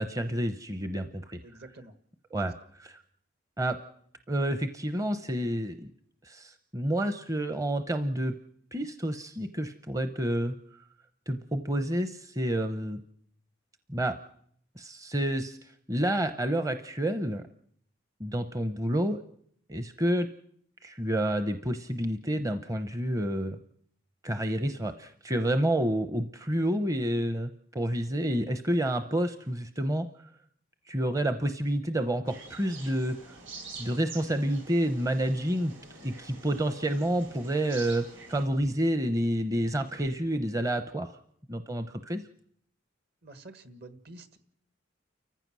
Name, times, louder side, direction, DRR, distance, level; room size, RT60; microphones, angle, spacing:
voice 1, 0.0-1.4 2.3-3.0 3.6-3.8 4.3-5.9 6.2-8.3 8.7-10.8 11.3-13.0 13.9-14.2 14.8-15.6 15.9-17.4 18.2-19.2 19.7-20.3 20.8-23.6 24.2-30.3 30.9-33.2 33.8-35.7 36.0-41.2 41.5-42.2, right 1 dB, 15° right, 9 dB, 0.7 m, -29 dB
voice 2, 1.4-1.9 43.2-44.4, right 2 dB, 55° right, 9 dB, 1.7 m, -48 dB
sound 1, 32.3-38.4, right 3 dB, 80° right, 5.5 m, -47 dB
29.5 x 15.0 x 6.2 m, 0.68 s
head